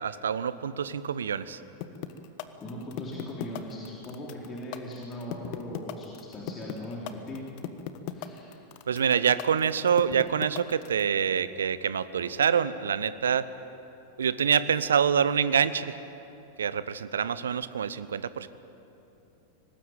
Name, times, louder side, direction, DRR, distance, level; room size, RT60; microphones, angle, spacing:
voice 1, 0.0-1.6 8.9-13.5 14.2-16.0 16.6-18.5, right 7 dB, 65° right, 15 dB, 0.8 m, -26 dB
sound 1, 1.8-11.0, left 13 dB, 45° left, 1.3 m, -36 dB
voice 2, 2.6-7.5 8.1-8.6, left 1 dB, 25° left, -4 dB, 4.0 m, -39 dB
24.0 x 19.0 x 9.1 m, 3.0 s
figure-of-eight pair, 90°, 0 cm